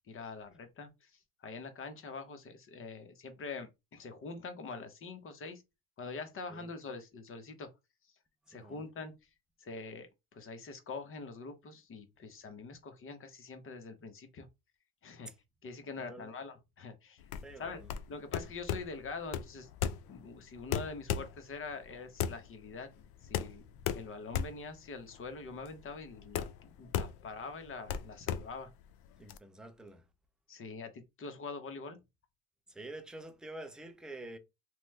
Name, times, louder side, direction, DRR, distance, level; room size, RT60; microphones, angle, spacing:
voice 1, 0.1-5.6 6.0-7.7 8.5-9.1 9.6-14.5 15.0-15.3 15.6-17.2 17.6-17.8 18.1-19.7 20.1-23.6 23.9-28.7 30.5-32.0, left 4 dB, 30° left, 0.8 m, -44 dB
voice 2, 8.5-8.8 15.3-15.4 16.0-16.3 17.4-17.9 29.2-30.1 32.7-34.4, right 2 dB, ahead, 0.3 m, -48 dB
sound 1, 17.2-29.4, left 9 dB, 65° left, 0.5 m, -37 dB
3.1 x 2.1 x 3.1 m
supercardioid pair, 110°, 41 cm